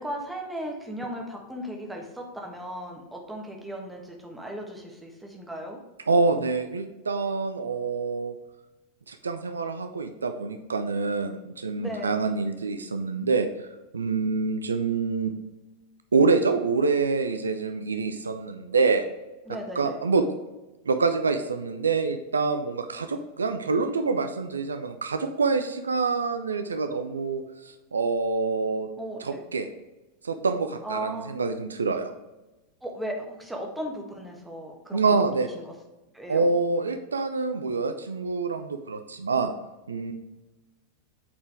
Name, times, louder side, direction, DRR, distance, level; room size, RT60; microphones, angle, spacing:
voice 1, 0.0-5.8 11.8-12.2 19.5-20.0 29.0-29.4 30.8-31.3 32.8-35.0 35.5-35.7 36.1-36.5, right 1 dB, 5° right, 1 dB, 1.3 m, -36 dB
voice 2, 6.1-8.3 9.1-13.5 13.9-15.3 16.1-19.0 19.8-20.2 20.9-28.9 29.2-29.7 30.2-32.1 34.9-35.5 36.3-39.5 39.9-40.1, right 4 dB, 75° right, 8 dB, 0.5 m, -26 dB
8.6 x 4.4 x 3.5 m, 1.1 s
figure-of-eight pair, 90°, 0 cm